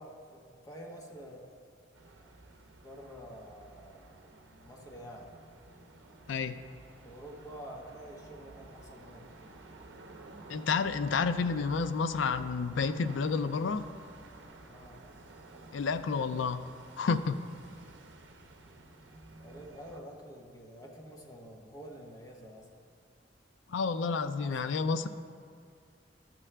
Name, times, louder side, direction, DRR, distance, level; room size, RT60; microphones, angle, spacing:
voice 1, 0.0-1.5 2.8-4.2 4.6-5.3 7.0-9.5 14.6-15.0 19.4-22.7 23.9-25.0, equal, 20° left, -1 dB, 1.0 m, -48 dB
sound 1, 1.9-20.0, right 2 dB, 75° right, 0.7 m, -52 dB
voice 2, 10.5-13.9 15.7-16.6 17.0-17.5 23.7-25.1, left 5 dB, 85° left, 11 dB, 0.4 m, -30 dB
12.5 x 6.0 x 3.3 m, 2.2 s
head